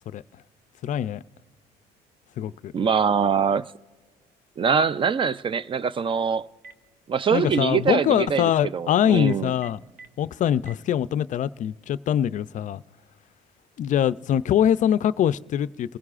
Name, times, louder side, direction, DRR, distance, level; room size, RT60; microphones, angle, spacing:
voice 1, 0.8-1.2 2.4-2.7 7.3-9.8 10.2-12.8 13.8-16.0, left 10 dB, 50° left, 0.4 m, -23 dB
voice 2, 2.7-3.7 4.6-6.5 7.1-9.5, right 6 dB, 30° right, 0.3 m, -23 dB
Telephone, 6.4-6.9 7.4-7.7 8.2-8.4 9.2-10.1 10.6-10.7, right 4 dB, 55° right, 1.0 m, -44 dB
28.5 x 16.0 x 2.4 m
cardioid pair, 110°, 17 cm